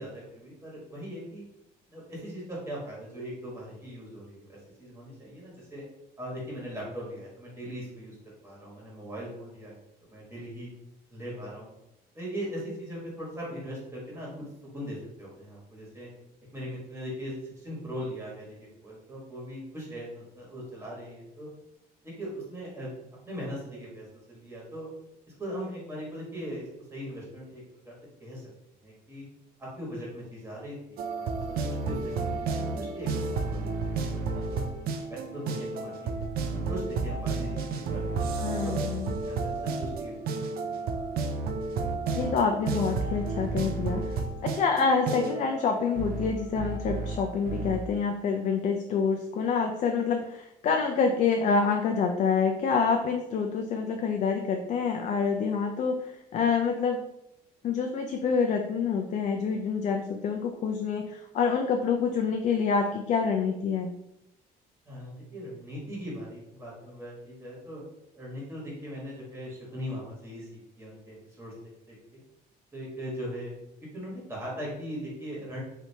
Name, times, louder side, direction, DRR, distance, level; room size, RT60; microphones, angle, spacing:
voice 1, 0.0-1.4 1.9-5.8 6.2-8.2 8.4-9.8 10.1-10.7 11.1-11.7 12.1-14.5 14.7-16.1 16.5-18.6 18.8-21.5 22.0-22.9 23.2-24.9 25.4-27.9 28.2-28.4 28.8-29.2 29.6-34.7 35.1-36.2 36.5-38.8 39.2-40.8 64.8-67.8 68.1-71.5 71.9-72.2 72.7-73.5 73.9-75.6, equal, 15° right, -5 dB, 1.3 m, -40 dB
sound 1, 31.0-47.8, right 4 dB, 65° right, 0.4 m, -32 dB
voice 2, 38.4-39.1 42.1-44.1 44.4-57.0 57.6-63.9, left 5 dB, 45° left, 3 dB, 0.4 m, -27 dB
3.2 x 2.7 x 2.8 m, 0.84 s
cardioid pair, 110°, 17 cm